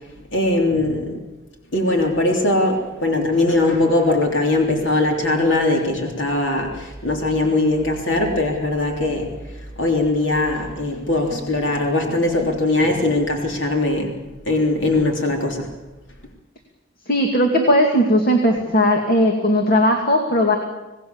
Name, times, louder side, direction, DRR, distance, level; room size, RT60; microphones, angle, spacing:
voice 1, 0.3-1.2 1.7-14.1 14.4-15.7, left 2 dB, 65° left, 1 dB, 3.4 m, -20 dB
voice 2, 17.1-20.5, equal, 45° left, 2 dB, 2.4 m, -17 dB
26.5 x 18.5 x 7.2 m, 1.1 s
head